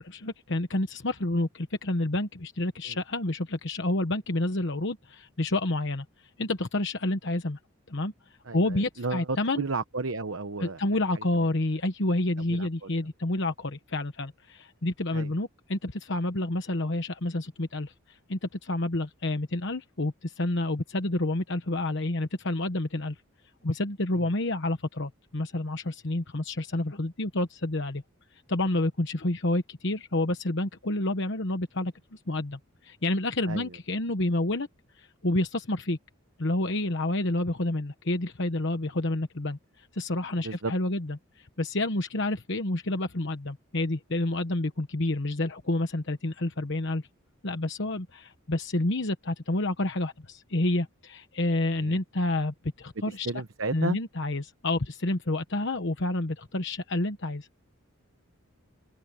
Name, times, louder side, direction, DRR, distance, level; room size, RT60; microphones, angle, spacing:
voice 1, 0.0-6.0 6.4-7.6 7.9-8.1 8.5-9.7 10.6-23.2 23.6-28.0 28.5-34.7 35.0-36.0 36.4-47.1 47.4-53.3 53.7-57.6, left 2 dB, 55° left, 1.2 m, -29 dB
voice 2, 8.4-10.8 11.1-11.2 12.5-12.9 15.1-15.3 24.2-24.3 33.5-33.7 40.4-40.7 51.7-52.0 53.1-54.0, right 3 dB, 60° right, 1.0 m, -33 dB
open air
head